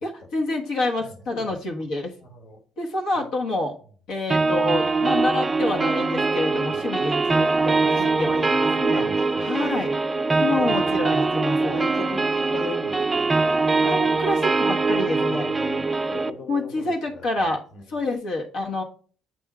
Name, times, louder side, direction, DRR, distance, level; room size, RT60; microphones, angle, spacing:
voice 1, 0.0-2.1 2.8-3.8 4.1-9.0 9.4-9.9 10.4-11.9 13.8-15.5 16.5-17.6 17.9-18.8, left 2 dB, 70° left, 0 dB, 1.3 m, -27 dB
voice 2, 1.0-1.7 2.2-2.6 3.1-3.3 6.7-6.8 8.0-8.4 8.8-9.5 10.6-10.9 11.5-13.3 15.1-17.8, left 3 dB, 50° left, 5 dB, 1.4 m, -39 dB
sound 1, 4.3-16.3, right 3 dB, 15° right, 0.4 m, -22 dB
7.8 x 3.6 x 4.9 m, 0.42 s
cardioid pair, 145°, 0 cm